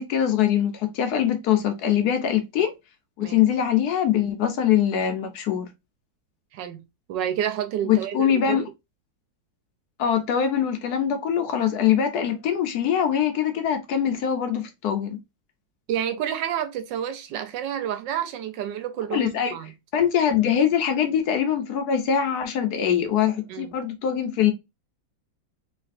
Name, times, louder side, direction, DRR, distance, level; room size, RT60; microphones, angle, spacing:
voice 1, 0.0-2.7 3.2-5.7 7.8-8.7 10.0-15.2 19.1-24.5, left 9 dB, 70° left, 1.0 m, -23 dB
voice 2, 6.5-6.8 7.1-8.6 15.9-19.7 23.5-23.7, right 10 dB, 80° right, 1.3 m, -29 dB
3.2 x 3.1 x 2.4 m
omnidirectional pair, 2.0 m